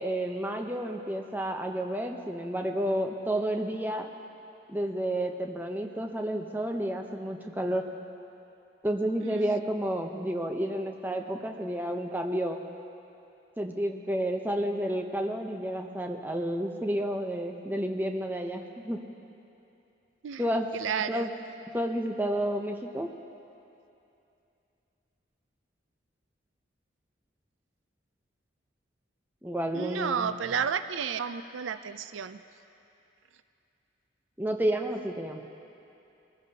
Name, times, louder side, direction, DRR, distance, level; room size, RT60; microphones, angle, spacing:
voice 1, 0.0-4.1 4.7-7.8 8.8-12.6 13.6-19.0 20.4-20.7 21.1-21.3 21.7-23.1 29.4-30.3 34.4-35.4, right 1 dB, 10° right, 3 dB, 0.6 m, -30 dB
voice 2, 9.2-9.5 20.2-20.4 20.7-21.3 29.7-32.4, right 7 dB, 85° right, 12 dB, 0.4 m, -32 dB
22.0 x 15.0 x 2.8 m, 2.8 s
head